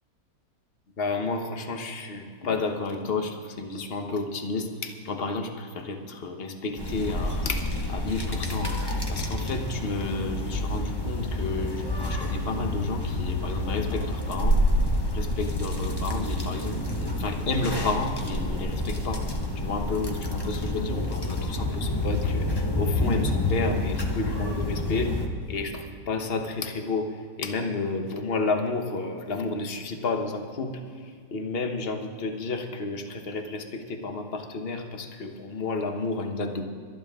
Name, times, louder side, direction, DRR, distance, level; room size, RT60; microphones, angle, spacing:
voice 1, 1.0-7.6 7.9-8.7 9.1-14.6 15.1-19.2 19.6-27.1 27.4-30.8 31.3-36.7, left 3 dB, 40° left, 5 dB, 1.2 m, -31 dB
sound 1, 6.8-25.3, left 1 dB, 15° left, 1.0 m, -28 dB
24.0 x 10.5 x 3.7 m, 2.2 s
omnidirectional pair, 1.9 m